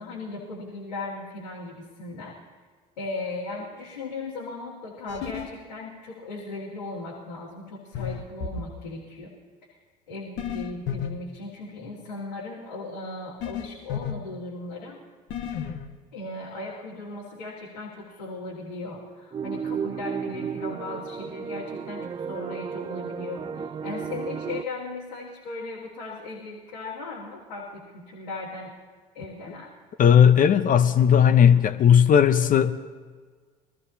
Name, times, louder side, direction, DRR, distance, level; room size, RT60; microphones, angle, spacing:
voice 1, 0.0-2.3 3.0-9.3 9.7-9.8 10.1-15.0 16.1-28.7 29.1-29.7, left 3 dB, 85° left, -6 dB, 2.1 m, -37 dB
sound 1, 5.1-5.5 7.9-8.6 10.4-11.1 13.4-14.1 15.3-15.9, left 8 dB, 60° left, 1.3 m, -31 dB
sound 2, 19.3-24.6, right 6 dB, 25° right, 0.4 m, -33 dB
voice 2, 30.0-32.7, left 8 dB, 40° left, 11 dB, 0.9 m, -17 dB
23.0 x 14.0 x 2.8 m, 1.5 s
hypercardioid pair, 65°, 21 cm